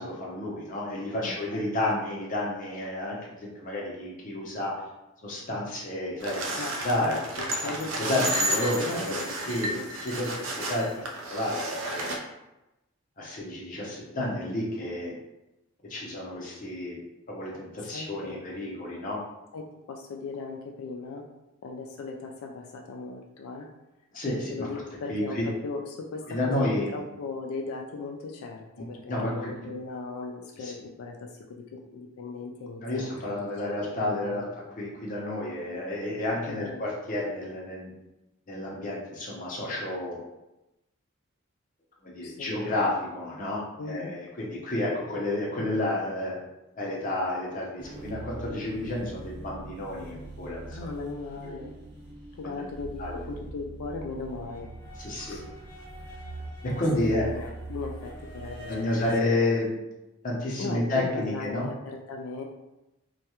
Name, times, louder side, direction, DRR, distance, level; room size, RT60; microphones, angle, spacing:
voice 1, 0.0-4.7 5.2-7.2 8.0-9.1 9.5-12.1 13.2-15.2 15.9-17.0 17.3-19.2 24.1-24.7 25.1-25.5 26.3-26.9 28.8-29.5 30.6-30.7 32.8-34.4 34.8-37.9 38.5-40.2 42.0-46.3 46.8-50.8 51.4-51.6 52.4-52.7 53.0-53.3 55.0-55.4 56.6-57.3 58.7-59.8 60.2-61.7, left 1 dB, 40° left, -4 dB, 0.6 m, -31 dB
voice 2, 1.2-1.7 6.6-8.4 8.8-9.3 9.7-9.9 17.5-17.6 17.9-18.4 19.5-21.2 21.6-23.7 24.5-33.8 34.2-34.4 36.4-36.8 42.2-42.6 43.8-44.1 50.7-51.7 52.4-54.7 55.2-55.5 57.0-59.4 60.6-62.4, left 3 dB, 90° left, 2 dB, 0.3 m, -38 dB
sound 1, 6.2-12.2, right 1 dB, 70° right, 0.4 m, -32 dB
sound 2, 47.8-59.2, right 2 dB, 50° right, 1.0 m, -42 dB
2.3 x 2.1 x 2.9 m, 0.95 s
head